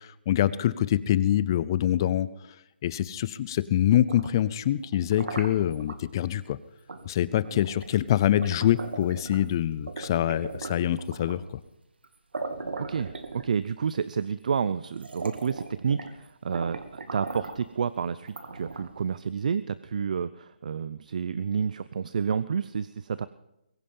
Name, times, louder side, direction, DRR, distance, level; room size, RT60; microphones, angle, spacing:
voice 1, 0.0-2.3 2.8-6.6 7.1-11.6, left 11 dB, 25° left, 18 dB, 0.5 m, -25 dB
sound 1, 3.9-6.0 6.9-7.1 7.4-9.5 9.9-11.5 12.0-12.1 12.3-13.8 14.5-14.6 14.9-16.2 16.5-17.7 18.3-19.1, right 3 dB, 75° right, 2.4 m, -39 dB
voice 2, 12.8-23.3, right 6 dB, 45° right, 15 dB, 0.6 m, -30 dB
22.0 x 9.9 x 5.5 m, 0.88 s
hypercardioid pair, 165°, 6 cm